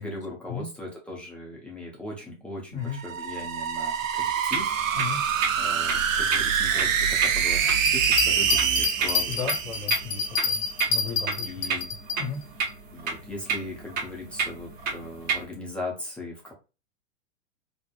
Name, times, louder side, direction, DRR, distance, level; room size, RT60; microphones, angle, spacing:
voice 1, 0.0-4.7 5.6-9.3 11.4-11.9 12.9-16.5, left 2 dB, 5° left, -3 dB, 0.4 m, -38 dB
voice 2, 2.7-3.0 4.9-5.2 9.3-10.6 10.9-11.8 12.2-12.4, left 5 dB, 90° left, 2 dB, 1.2 m, -35 dB
sound 1, 2.9-10.3, right 7 dB, 80° right, 0.5 m, -25 dB
sound 2, 4.5-15.4, right 5 dB, 25° right, 0.8 m, -32 dB
Bell, 7.8-12.2 12.7-12.8, left 5 dB, 30° left, 0.7 m, -27 dB
3.0 x 2.1 x 2.3 m, 0.29 s
hypercardioid pair, 120°, 39 cm